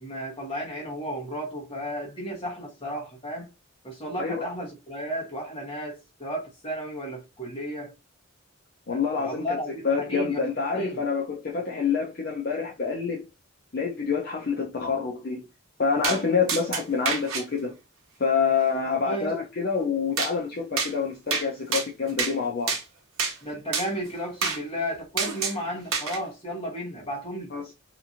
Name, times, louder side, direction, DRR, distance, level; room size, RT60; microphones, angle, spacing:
voice 1, 0.0-3.5 3.8-7.9 8.9-10.5 10.7-11.0 19.0-19.3 23.4-27.5, equal, 25° left, 1.1 m, -33 dB
voice 2, 8.9-9.4 9.8-13.2 13.7-15.5 15.8-17.7 18.2-22.8 27.5-27.7, left 5 dB, 45° left, 0.5 m, -27 dB
sound 1, 16.0-16.2 16.5-17.4 20.2-20.3 20.8-20.9 21.3-21.5 21.7-22.3 22.7-22.8 23.2-23.4 23.7-23.9 24.4-24.6 25.2-25.6 25.9-26.2, right 5 dB, 85° right, 0.7 m, -27 dB
2.9 x 2.5 x 2.5 m
head